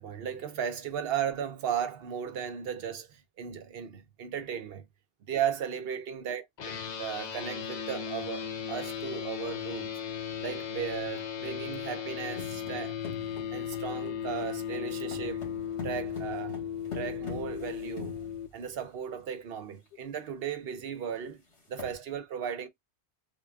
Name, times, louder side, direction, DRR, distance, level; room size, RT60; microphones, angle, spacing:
voice 1, 0.0-4.8 5.3-9.9 10.4-13.0 13.5-15.5 15.8-16.6 16.9-18.2 18.5-21.4 21.7-22.7, right 8 dB, 60° right, 0.9 m, -36 dB
sound 1, 6.6-18.5, left 8 dB, 50° left, 0.5 m, -36 dB
sound 2, 12.4-18.9 19.5-19.6 19.9-20.2 20.5-20.6 21.3-21.4 21.6-21.9, left 4 dB, 70° left, 1.8 m, -44 dB
3.7 x 2.2 x 3.4 m
omnidirectional pair, 1.2 m